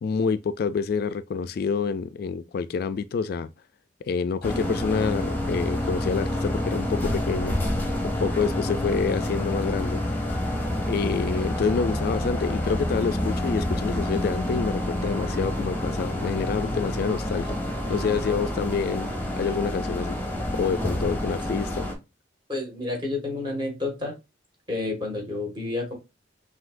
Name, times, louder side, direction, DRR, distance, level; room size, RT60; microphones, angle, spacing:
voice 1, 0.0-3.5 4.1-7.6 8.0-10.0 10.9-17.6 17.9-19.1 19.4-20.2 20.6-21.9, left 5 dB, 60° left, 0.3 m, -27 dB
sound 1, 4.4-21.9, left 1 dB, 10° left, 1.0 m, -28 dB
voice 2, 22.5-24.1 24.7-25.9, left 2 dB, 25° right, 1.8 m, -30 dB
5.7 x 2.7 x 2.5 m
head